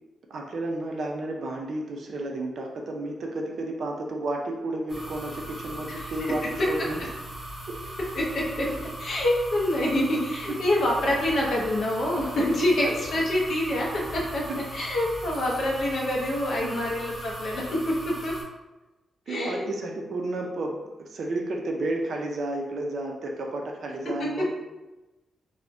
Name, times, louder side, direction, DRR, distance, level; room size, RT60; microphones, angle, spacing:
voice 1, 0.3-7.0 7.7-7.8 12.8-12.9 14.5-14.6 16.6-16.8 19.3-24.5, right 2 dB, 55° right, 1 dB, 0.4 m, -32 dB
sound 1, 4.9-18.4, right 1 dB, 5° right, 0.6 m, -39 dB
voice 2, 5.9-6.3 8.1-8.7 9.0-18.4 19.3-19.7, left 1 dB, 50° left, -3 dB, 0.5 m, -26 dB
2.5 x 2.0 x 3.4 m, 1.1 s
wide cardioid pair, 175°, 0 cm